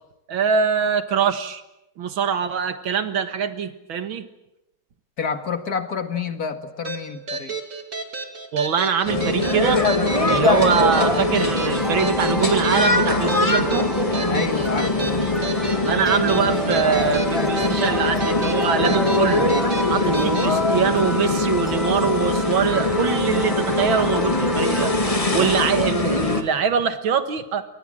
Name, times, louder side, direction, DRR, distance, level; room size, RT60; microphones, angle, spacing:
voice 1, 0.3-1.6 2.0-4.2 8.5-9.8 10.3-13.9 15.9-19.5 19.9-24.9 25.3-27.6, right 7 dB, 75° right, 10 dB, 2.3 m, -23 dB
voice 2, 5.2-7.6 14.3-15.2 25.3-25.5, left 5 dB, 50° left, 8 dB, 2.2 m, -29 dB
sound 1, 6.8-20.5, right 3 dB, 40° right, 2.9 m, -32 dB
sound 2, 9.1-26.4, left 2 dB, 15° left, 2.1 m, -22 dB
sound 3, 10.0-25.9, equal, ahead, 0.3 m, -30 dB
29.5 x 24.0 x 7.6 m, 0.92 s
omnidirectional pair, 2.2 m